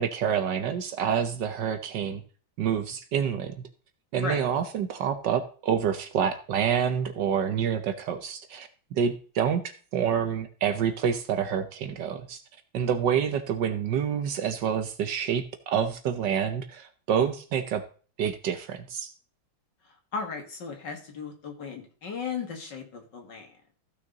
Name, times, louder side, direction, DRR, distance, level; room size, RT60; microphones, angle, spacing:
voice 1, 0.0-2.2 2.6-3.5 4.1-9.6 9.9-12.4 12.7-17.8 18.2-19.1, right 8 dB, 65° right, 9 dB, 1.3 m, -27 dB
voice 2, 20.1-23.5, left 5 dB, 55° left, 3 dB, 2.6 m, -36 dB
14.5 x 6.2 x 3.9 m, 0.41 s
omnidirectional pair, 2.3 m